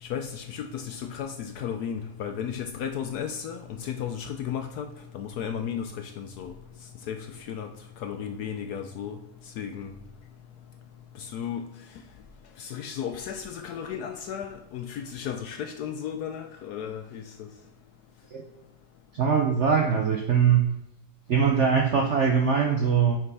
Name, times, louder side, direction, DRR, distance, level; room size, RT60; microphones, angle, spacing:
voice 1, 0.0-4.9 5.1-6.5 7.1-7.7 8.0-9.2 9.6-9.9 11.2-11.7 12.6-17.5, left 8 dB, 70° left, 6 dB, 0.9 m, -34 dB
voice 2, 19.1-20.6 21.3-23.2, right 6 dB, 70° right, 2 dB, 0.6 m, -22 dB
5.9 x 5.1 x 4.7 m, 0.87 s
omnidirectional pair, 2.1 m